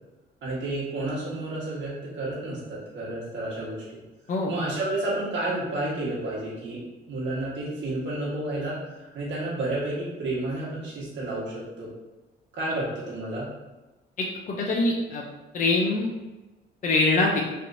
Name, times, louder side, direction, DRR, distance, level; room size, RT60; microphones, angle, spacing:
voice 1, 0.4-3.8 4.5-6.8 7.1-11.9 12.5-13.5, right 2 dB, 65° right, -8 dB, 1.4 m, -31 dB
voice 2, 14.2-15.2 15.5-16.1 16.8-17.4, left 2 dB, 40° left, -1 dB, 0.5 m, -24 dB
3.2 x 2.8 x 2.6 m, 1.1 s
cardioid pair, 90°, 20 cm